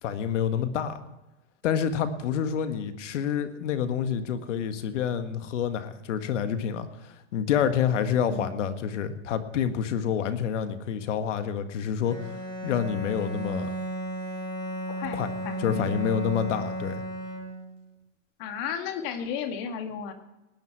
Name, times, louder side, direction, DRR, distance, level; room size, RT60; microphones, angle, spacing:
voice 1, 0.0-1.0 1.6-12.4 12.6-13.7 15.1-15.3 15.6-17.0, left 8 dB, 70° left, 9 dB, 1.7 m, -28 dB
voice 2, 8.3-8.6 14.9-15.9 18.4-20.1, left 7 dB, 45° left, 7 dB, 1.9 m, -34 dB
Bowed string instrument, 12.0-17.8, right 1 dB, 10° left, 2.7 m, -34 dB
19.0 x 9.3 x 4.7 m, 1.0 s
hypercardioid pair, 135°, 37 cm